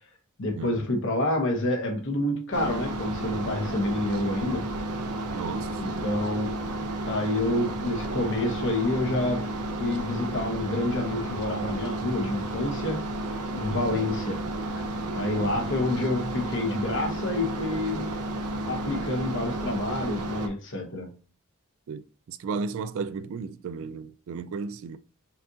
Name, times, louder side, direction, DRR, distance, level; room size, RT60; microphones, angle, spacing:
voice 1, 0.4-4.7 5.8-6.5 7.1-9.5 9.8-13.0 13.5-14.4 14.8-14.9 15.1-18.1 18.7-21.2, left 1 dB, 55° left, 1.0 m, -28 dB
sound 1, 2.5-20.5, right 1 dB, 90° right, 0.7 m, -32 dB
voice 2, 5.3-6.0 13.7-14.1 15.4-15.6 21.9-25.0, right 5 dB, 65° right, 0.3 m, -35 dB
5.7 x 2.5 x 2.7 m
head